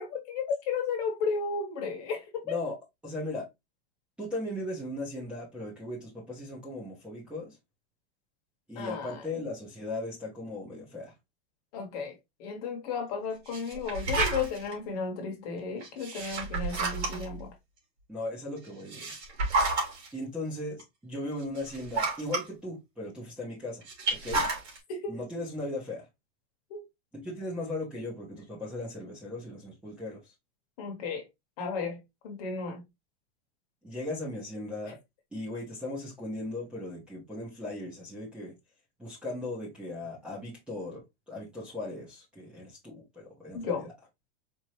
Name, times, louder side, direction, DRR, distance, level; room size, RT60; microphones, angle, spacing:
voice 1, 0.0-2.6 8.8-9.4 11.7-17.5 24.9-25.2 26.7-26.9 30.8-31.2 31.6-32.8 43.5-43.9, left 5 dB, 35° left, 1.1 m, -34 dB
voice 2, 2.4-2.8 3.0-3.5 4.2-7.6 8.7-11.1 18.1-19.1 20.1-23.8 24.1-24.5 25.1-26.1 27.1-30.2 33.8-35.0 35.3-38.5 39.0-43.9, left 2 dB, 5° right, 0.7 m, -37 dB
sound 1, 13.5-14.7 15.8-17.4 18.7-20.1 20.8-20.9 21.4-22.4 23.8-24.8, right 3 dB, 80° right, 2.5 m, -30 dB
4.4 x 2.6 x 3.0 m
supercardioid pair, 175°, 32 cm